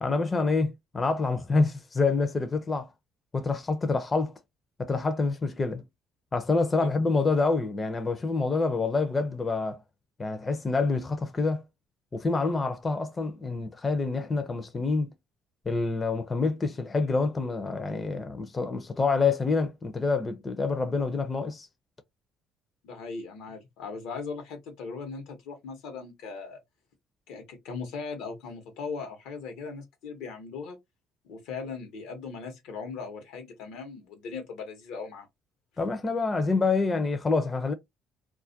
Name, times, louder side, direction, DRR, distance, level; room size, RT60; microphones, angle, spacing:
voice 1, 0.0-2.9 3.3-4.3 4.8-5.8 6.3-9.8 10.2-11.6 12.1-15.1 15.7-21.7 35.8-37.7, left 3 dB, 25° left, 0.4 m, -27 dB
voice 2, 22.8-26.6 27.3-30.8 31.2-35.3, left 5 dB, 85° left, 0.9 m, -39 dB
2.3 x 2.1 x 2.6 m
cardioid pair, 100°, 0 cm